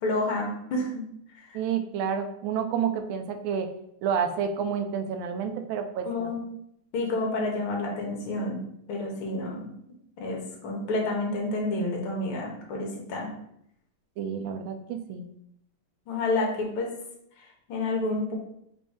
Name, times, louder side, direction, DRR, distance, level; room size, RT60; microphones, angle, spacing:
voice 1, 0.0-1.0 1.3-1.6 6.0-6.4 6.9-8.6 8.9-9.7 10.2-13.3 16.1-17.0 17.4-18.3, left 2 dB, 75° left, -1 dB, 1.8 m, -29 dB
voice 2, 1.5-3.7 4.0-6.3 14.2-15.3, right 7 dB, 75° right, 7 dB, 1.3 m, -29 dB
4.2 x 2.6 x 4.7 m, 0.73 s
omnidirectional pair, 2.4 m